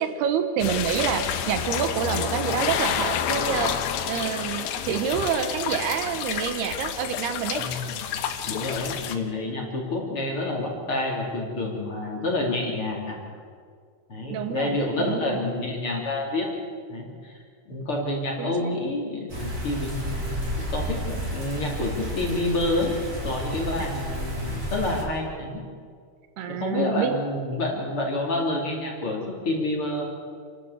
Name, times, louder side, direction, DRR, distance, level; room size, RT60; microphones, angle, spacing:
voice 1, 0.0-7.6 14.3-15.4 18.4-18.7 23.8-23.9 26.4-27.2, right 7 dB, 75° right, 8 dB, 3.0 m, -28 dB
sound 1, 0.6-9.2, left 8 dB, 85° left, 3.4 m, -29 dB
voice 2, 8.4-13.2 14.1-16.5 16.9-17.4 17.7-22.9 23.2-25.6 26.5-30.1, left 2 dB, 35° left, -1 dB, 3.8 m, -28 dB
sound 2, 19.3-25.0, equal, 20° right, 4.1 m, -31 dB
29.0 x 13.0 x 8.2 m, 2.1 s
omnidirectional pair, 4.7 m